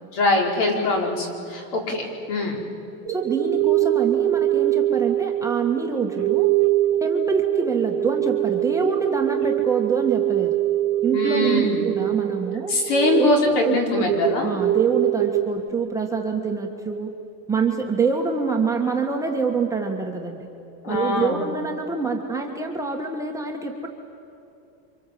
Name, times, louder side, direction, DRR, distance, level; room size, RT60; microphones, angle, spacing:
voice 1, 0.1-2.6 11.1-11.8 12.7-14.5 20.8-21.4, left 2 dB, 55° left, 1 dB, 4.8 m, -23 dB
voice 2, 3.1-6.5 7.0-10.6 11.0-12.7 13.2-14.0 14.4-17.1 17.5-20.5 20.9-23.9, right 4 dB, 5° right, 0 dB, 1.6 m, -26 dB
sound 1, 3.1-15.4, right 14 dB, 70° right, 1.3 m, -23 dB
29.0 x 25.5 x 7.8 m, 2.7 s
supercardioid pair, 130°, 48 cm